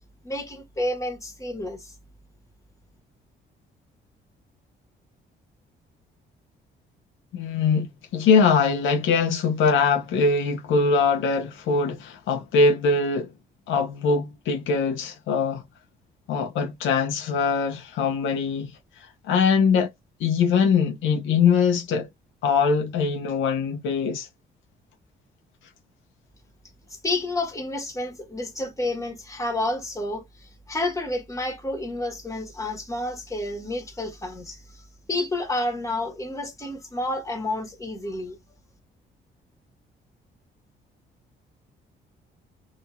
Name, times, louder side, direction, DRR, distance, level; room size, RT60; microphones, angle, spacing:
voice 1, 0.2-1.9 26.9-38.4, left 2 dB, 15° left, 1.3 m, -30 dB
voice 2, 7.3-7.9 8.1-13.3 13.7-15.6 16.3-18.7 19.0-19.9 20.2-22.1 22.4-24.3, left 5 dB, 80° left, 0.6 m, -22 dB
2.9 x 2.6 x 2.3 m
cardioid pair, 90°, 20 cm